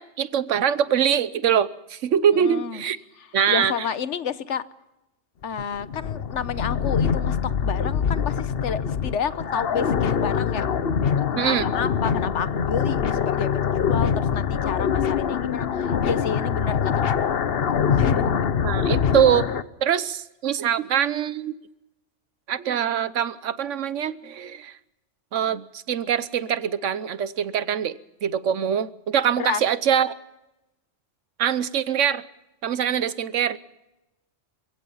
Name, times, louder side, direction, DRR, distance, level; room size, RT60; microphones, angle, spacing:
voice 1, 0.0-3.0 3.3-3.7 11.3-11.7 18.6-21.5 22.5-24.8 25.3-30.1 31.4-32.2 32.6-33.6, right 8 dB, 80° right, 15 dB, 1.2 m, -23 dB
voice 2, 2.4-2.8 3.2-4.6 5.4-10.7 11.2-17.3 18.0-18.3 29.4-29.6, left 7 dB, 75° left, 14 dB, 1.2 m, -30 dB
sound 1, 5.4-19.6, left 7 dB, 55° left, 1.0 m, -24 dB
29.0 x 16.5 x 5.6 m, 0.94 s
omnidirectional pair, 1.2 m